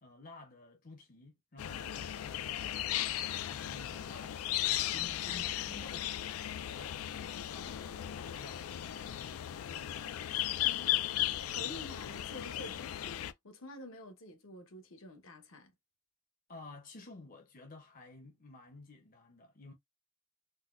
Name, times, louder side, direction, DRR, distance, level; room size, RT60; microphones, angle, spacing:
voice 1, 0.0-6.2 6.6-10.0 10.3-10.5 16.5-19.7, left 2 dB, 40° left, 0.6 m, -53 dB
sound 1, 1.6-13.3, left 13 dB, 85° left, 0.3 m, -36 dB
voice 2, 10.6-11.1 11.5-15.7, left 1 dB, 70° left, 0.9 m, -49 dB
4.0 x 2.2 x 2.4 m
head